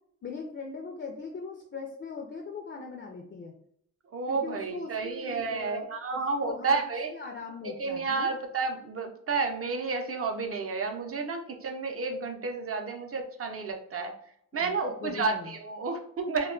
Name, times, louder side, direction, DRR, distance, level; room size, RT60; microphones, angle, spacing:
voice 1, 0.2-3.5 4.3-8.4 14.5-15.5, left 4 dB, 35° left, 1 dB, 0.4 m, -40 dB
voice 2, 4.1-7.1 7.6-14.1 14.5-16.5, right 4 dB, 45° right, 4 dB, 0.5 m, -31 dB
2.2 x 2.1 x 3.7 m, 0.69 s
wide cardioid pair, 110°, 32 cm